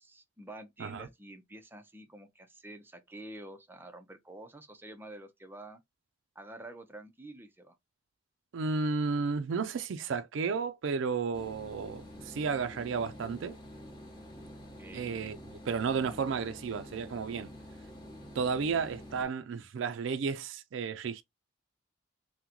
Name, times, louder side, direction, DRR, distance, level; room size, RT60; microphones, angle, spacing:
voice 1, 0.0-5.8 6.4-7.8 14.5-15.4, right 1 dB, 10° right, 0.5 m, -48 dB
voice 2, 8.5-13.6 14.9-15.4 15.7-17.5 18.3-21.2, right 5 dB, 85° right, 0.4 m, -32 dB
sound 1, 11.3-19.2, equal, 25° left, 0.9 m, -48 dB
3.7 x 2.1 x 2.9 m
head